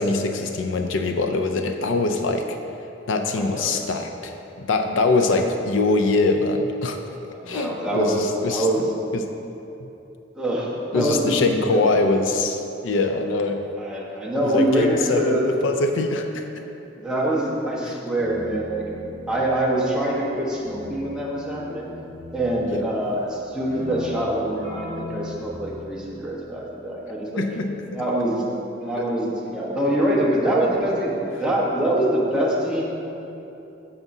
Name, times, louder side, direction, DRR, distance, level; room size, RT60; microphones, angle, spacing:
voice 1, 0.0-2.6 3.1-8.9 9.1-9.3 9.8-9.9 10.9-13.6 14.4-16.5 17.9-18.0 22.7-22.9 27.4-28.0 29.0-29.1, left 3 dB, 85° left, 5 dB, 0.4 m, -23 dB
voice 2, 3.4-3.8 5.1-5.3 7.3-8.9 10.3-11.9 13.8-15.4 16.9-18.9 19.3-21.9 22.3-27.4 27.9-28.4 28.8-31.1 31.4-32.8, right 1 dB, 5° right, -6 dB, 1.1 m, -24 dB
Keyboard (musical), 18.1-26.6, left 2 dB, 20° left, 1.3 m, -40 dB
9.1 x 7.2 x 2.7 m, 2.9 s
head